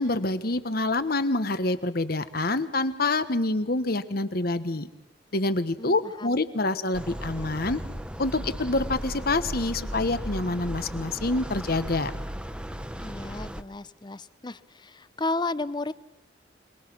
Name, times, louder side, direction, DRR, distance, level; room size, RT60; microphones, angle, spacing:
voice 1, 0.0-4.9 5.3-7.8 8.2-12.1, left 2 dB, 55° left, 11 dB, 1.3 m, -26 dB
voice 2, 5.8-6.4 13.0-15.9, left 2 dB, 25° left, 16 dB, 0.7 m, -33 dB
sound 1, 6.9-13.6, equal, 5° right, 0.9 m, -36 dB
26.0 x 20.5 x 6.2 m, 0.93 s
head